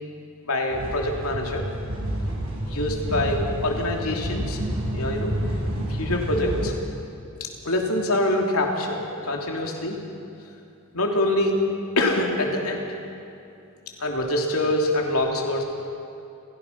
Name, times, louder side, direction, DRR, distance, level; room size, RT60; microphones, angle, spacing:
voice 1, 0.4-1.6 2.6-4.6 4.9-5.3 5.9-6.7 7.4-10.0 10.9-11.6 12.0-12.8 14.0-15.6, left 1 dB, 80° left, 1 dB, 3.1 m, -25 dB
sound 1, 0.7-6.7, right 1 dB, 75° right, 5.6 m, -29 dB
30.0 x 16.0 x 5.9 m, 2.7 s
head